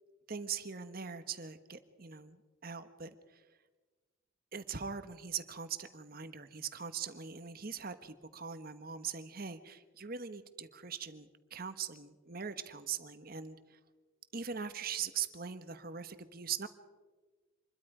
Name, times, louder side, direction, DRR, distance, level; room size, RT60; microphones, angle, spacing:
voice 1, 0.3-3.4 4.5-13.8 14.3-16.7, right 7 dB, 45° right, 10 dB, 1.2 m, -41 dB
26.5 x 22.0 x 5.0 m, 1.3 s
head